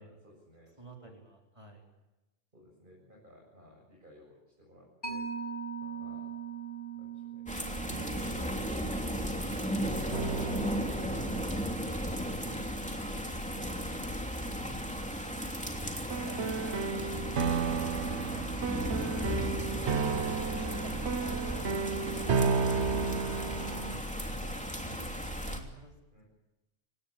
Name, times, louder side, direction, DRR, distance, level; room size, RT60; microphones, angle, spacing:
voice 1, 0.0-1.2 2.5-5.3 6.0-6.3 6.9-7.8 26.1-26.2, equal, 40° right, -3 dB, 8.0 m, -59 dB
voice 2, 0.8-1.8 19.2-23.1 23.4-26.0, right 2 dB, 25° right, 1 dB, 4.1 m, -52 dB
Mallet percussion, 5.0-12.1, right 6 dB, 40° left, 6.4 m, -42 dB
sound 1, 5.8-5.9 7.9-8.9 10.1-13.4 16.1-24.0, right 5 dB, 65° right, 1.3 m, -34 dB
sound 2, 7.5-25.6, equal, 5° left, 2.9 m, -35 dB
26.5 x 18.5 x 8.9 m, 1.0 s
omnidirectional pair, 1.3 m